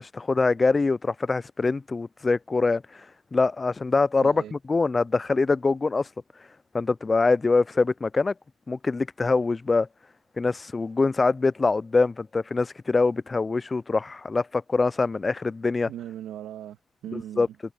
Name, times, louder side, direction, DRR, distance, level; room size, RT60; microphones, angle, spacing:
voice 1, 0.0-2.8 3.3-6.1 6.7-8.3 8.7-9.9 10.4-15.9 17.1-17.5, left 3 dB, 25° left, 0.3 m, -24 dB
voice 2, 4.2-4.5 15.9-17.6, right 11 dB, 80° right, 2.2 m, -39 dB
cardioid pair, 90°, 0 cm